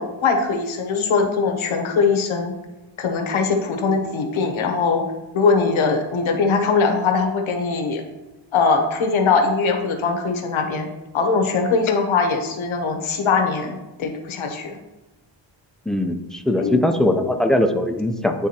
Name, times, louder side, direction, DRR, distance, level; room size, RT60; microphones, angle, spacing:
voice 1, 0.0-2.5 3.0-5.0 5.3-8.0 8.5-10.9 11.1-14.8 16.6-16.9 17.2-17.3, left 4 dB, 85° left, 4 dB, 1.0 m, -21 dB
voice 2, 15.9-18.5, left 1 dB, ahead, 5 dB, 0.5 m, -20 dB
10.0 x 3.6 x 2.8 m, 1.1 s
cardioid pair, 90°, 46 cm